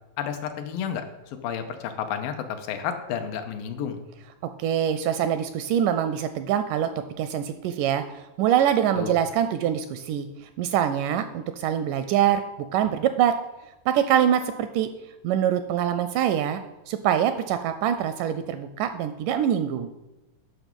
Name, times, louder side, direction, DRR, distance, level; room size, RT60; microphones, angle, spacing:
voice 1, 0.2-1.1 1.4-4.0 9.0-9.2, left 8 dB, 85° left, 6 dB, 2.6 m, -31 dB
voice 2, 4.6-6.9 7.2-8.0 8.4-10.3 10.6-12.4 12.7-13.3 13.9-14.9 15.2-16.6 16.9-19.9, right 10 dB, 80° right, 10 dB, 1.9 m, -24 dB
11.5 x 6.1 x 5.3 m, 1.0 s
omnidirectional pair, 4.1 m